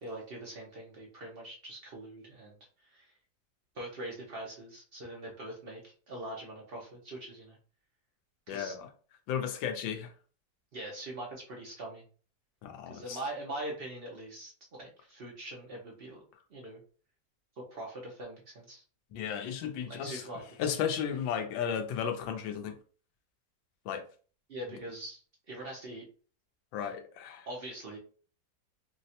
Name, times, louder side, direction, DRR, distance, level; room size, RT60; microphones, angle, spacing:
voice 1, 0.0-2.5 2.8-3.1 3.7-7.6 8.5-8.7 10.7-12.0 12.9-14.5 14.8-16.2 16.5-16.8 17.6-18.8 19.9-20.7 24.5-26.0 27.5-28.0, right 1 dB, 85° right, 0.5 m, -42 dB
voice 2, 8.5-8.9 9.3-10.1 12.6-13.2 19.1-20.2 20.6-22.8 23.8-24.0 26.7-27.5, left 8 dB, 85° left, 1.4 m, -34 dB
4.1 x 2.1 x 2.7 m
omnidirectional pair, 2.0 m